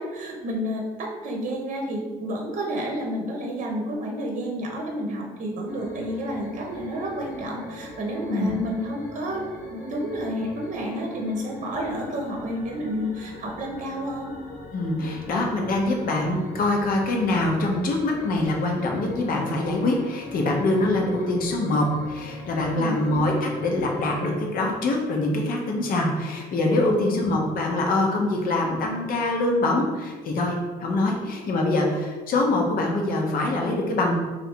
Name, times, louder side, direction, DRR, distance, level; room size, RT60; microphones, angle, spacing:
voice 1, 0.0-9.4 9.7-14.3 22.7-23.1 26.8-27.3, equal, 45° right, 0 dB, 0.8 m, -30 dB
sound 1, 5.7-24.3, left 2 dB, 80° left, 1.1 m, -42 dB
voice 2, 14.7-34.1, left 2 dB, 60° left, 1 dB, 0.9 m, -24 dB
3.2 x 2.6 x 4.4 m, 1.3 s
cardioid pair, 110°, 17 cm